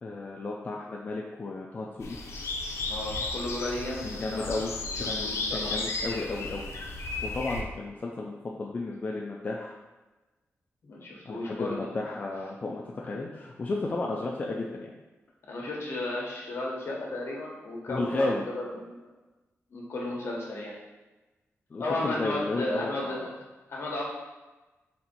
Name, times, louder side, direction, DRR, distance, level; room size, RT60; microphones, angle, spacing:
voice 1, 0.0-2.2 4.0-6.7 7.2-9.7 11.3-14.9 17.9-18.4 21.7-23.3, left 2 dB, 35° left, -2 dB, 0.4 m, -33 dB
sound 1, 2.0-7.6, left 3 dB, 80° left, 0.6 m, -34 dB
voice 2, 2.8-4.7 5.2-5.8 10.8-11.9 15.5-19.0 19.7-20.7 21.8-23.3 23.7-24.0, left 2 dB, 60° left, -2 dB, 1.1 m, -34 dB
4.2 x 2.6 x 4.3 m, 1.1 s
wide cardioid pair, 150°, 5 cm